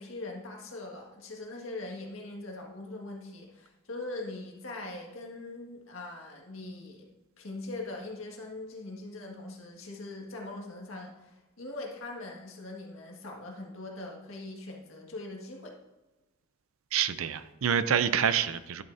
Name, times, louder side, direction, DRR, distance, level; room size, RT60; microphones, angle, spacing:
voice 1, 0.0-7.1 7.4-15.8, left 2 dB, 70° left, 0 dB, 1.8 m, -41 dB
voice 2, 16.9-18.8, right 8 dB, 70° right, 13 dB, 0.5 m, -27 dB
11.0 x 7.4 x 2.7 m, 1.1 s
head